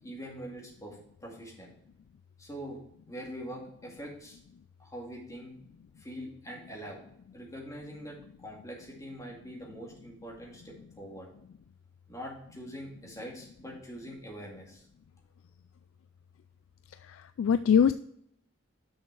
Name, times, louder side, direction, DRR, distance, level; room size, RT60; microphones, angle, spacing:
voice 1, 0.0-1.7 2.4-2.8 3.1-4.4 4.8-5.5 6.0-7.0 7.3-11.3 12.1-14.8, equal, 15° left, -3 dB, 2.3 m, -43 dB
voice 2, 17.0-17.9, left 7 dB, 90° left, 12 dB, 0.3 m, -23 dB
6.5 x 6.3 x 4.6 m, 0.69 s
head